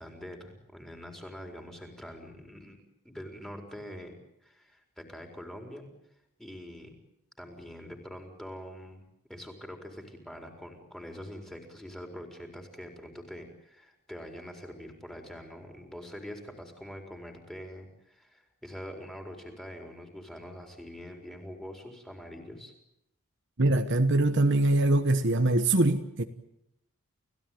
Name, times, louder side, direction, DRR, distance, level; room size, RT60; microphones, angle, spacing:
voice 1, 0.0-2.8 3.0-4.1 4.4-5.9 6.4-7.0 7.4-9.0 9.3-22.7, equal, ahead, 3 dB, 4.3 m, -44 dB
voice 2, 23.6-26.2, right 2 dB, 55° right, 7 dB, 1.3 m, -23 dB
30.0 x 16.5 x 9.3 m, 0.83 s
head